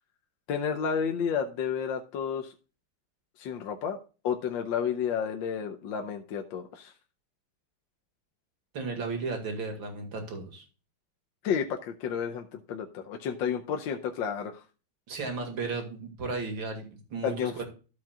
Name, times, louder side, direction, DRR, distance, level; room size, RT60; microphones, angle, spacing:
voice 1, 0.5-2.5 3.4-4.0 4.2-6.9 11.4-14.6 17.2-17.6, left 7 dB, 70° left, 4 dB, 1.3 m, -31 dB
voice 2, 8.7-10.6 15.1-17.7, right 4 dB, 60° right, 4 dB, 2.8 m, -34 dB
13.5 x 7.4 x 2.4 m, 0.34 s
omnidirectional pair, 2.4 m